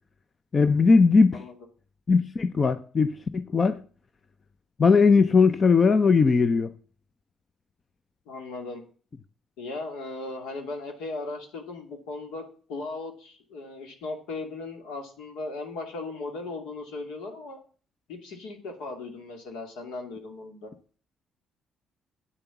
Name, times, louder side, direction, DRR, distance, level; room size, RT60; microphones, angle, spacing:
voice 1, 0.5-1.4 2.1-3.8 4.8-6.7, left 4 dB, 40° left, 0.7 m, -19 dB
voice 2, 8.3-8.8 9.6-12.4 12.7-17.6 18.1-20.7, left 3 dB, 85° left, 2.5 m, -37 dB
9.1 x 6.9 x 7.1 m
supercardioid pair, 65°, 0 cm